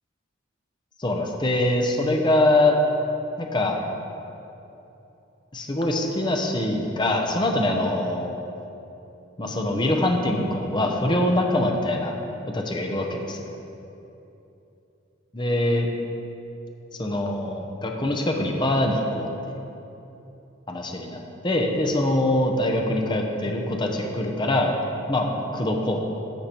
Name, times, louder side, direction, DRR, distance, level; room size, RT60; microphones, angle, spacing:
voice 1, 1.0-2.8 3.4-3.8 5.5-8.4 9.4-12.2 12.5-13.5 15.3-15.9 17.0-19.5 20.7-21.2 21.4-24.8 25.1-25.3 25.5-26.0, left 1 dB, 25° left, 2 dB, 0.8 m, -23 dB
10.5 x 6.6 x 4.4 m, 2.9 s
head